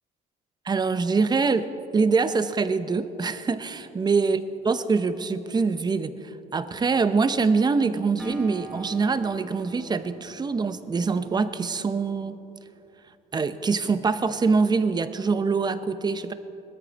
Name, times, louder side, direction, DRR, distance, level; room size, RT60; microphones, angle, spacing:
voice 1, 0.6-1.7 1.9-4.4 4.6-12.3 13.3-16.3, right 4 dB, 25° right, 12 dB, 0.7 m, -24 dB
Acoustic guitar, 8.2-11.9, right 2 dB, 5° right, 1.5 m, -43 dB
19.5 x 13.0 x 4.1 m, 2.9 s
cardioid pair, 110°, 17 cm